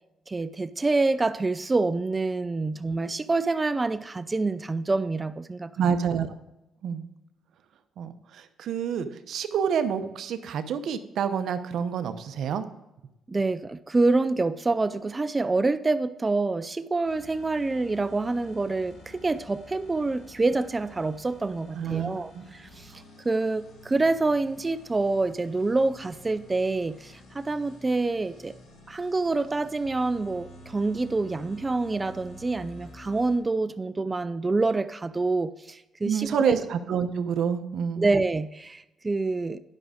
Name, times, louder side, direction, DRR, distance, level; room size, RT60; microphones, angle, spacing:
voice 1, 0.3-5.7 13.3-22.9 23.2-28.5 28.9-36.6 38.0-39.6, right 3 dB, 25° right, 14 dB, 0.4 m, -26 dB
voice 2, 5.8-6.3 6.8-7.1 8.0-12.7 21.7-22.4 36.0-38.1, right 7 dB, 70° right, 10 dB, 0.8 m, -28 dB
sound 1, 17.0-33.4, left 1 dB, 85° left, 2.9 m, -50 dB
10.5 x 6.2 x 4.9 m, 0.92 s
cardioid pair, 90°, 0 cm